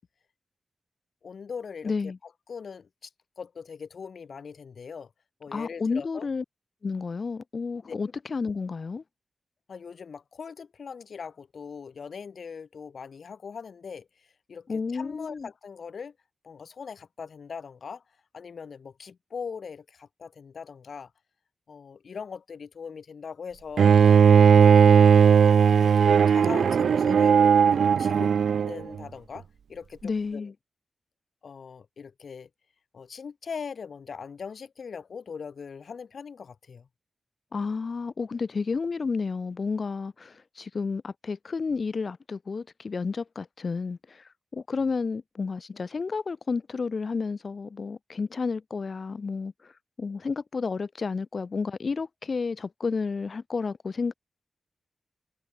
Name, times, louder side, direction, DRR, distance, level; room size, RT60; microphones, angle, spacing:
voice 1, 1.2-3.1 3.4-5.1 5.4-6.3 7.9-8.0 9.7-16.1 16.4-18.0 18.3-21.1 21.7-24.0 25.4-30.5 31.4-32.5 32.9-36.9, left 6 dB, 70° left, 3.7 m, -41 dB
voice 2, 1.8-2.2 5.5-6.4 6.8-9.0 14.7-15.5 30.0-30.5 37.5-44.2 44.5-49.5 50.0-54.1, left 4 dB, 55° left, 3.5 m, -31 dB
Bowed string instrument, 23.8-28.8, right 7 dB, 90° right, 0.7 m, -17 dB
wide cardioid pair, 85°, 0 cm